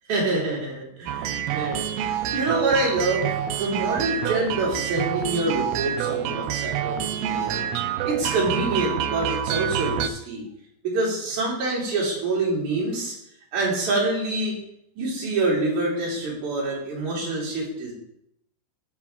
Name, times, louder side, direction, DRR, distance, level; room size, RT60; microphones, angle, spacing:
voice 1, 0.1-7.6 8.0-10.4 10.8-13.2 13.5-14.6 15.0-17.9, right 2 dB, 50° right, -4 dB, 3.9 m, -26 dB
sound 1, 1.1-10.1, right 10 dB, 80° right, 2.3 m, -27 dB
15.0 x 5.2 x 3.5 m, 0.71 s
omnidirectional pair, 4.5 m